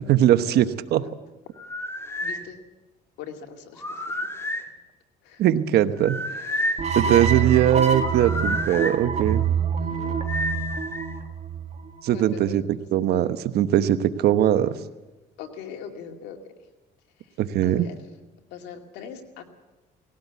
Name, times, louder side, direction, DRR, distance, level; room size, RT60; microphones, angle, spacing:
voice 1, 0.1-1.0 5.4-6.2 7.0-9.4 12.0-12.6 12.9-14.7 17.4-17.9, right 11 dB, 70° right, 11 dB, 1.1 m, -20 dB
sound 1, 1.6-2.4 3.8-4.7 6.0-6.9 8.0-9.0 10.3-11.1, left 1 dB, 15° left, 2.2 m, -30 dB
voice 2, 2.2-2.6 3.2-4.2 5.2-5.4 6.3-7.5 9.8-10.2 12.1-12.7 12.9-13.3 15.4-16.4 17.6-17.9 18.5-19.4, left 7 dB, 90° left, 4 dB, 2.5 m, -41 dB
sound 2, 6.8-12.0, right 6 dB, 40° right, 1.8 m, -26 dB
19.0 x 17.0 x 8.3 m, 1.1 s
cardioid pair, 110°, 17 cm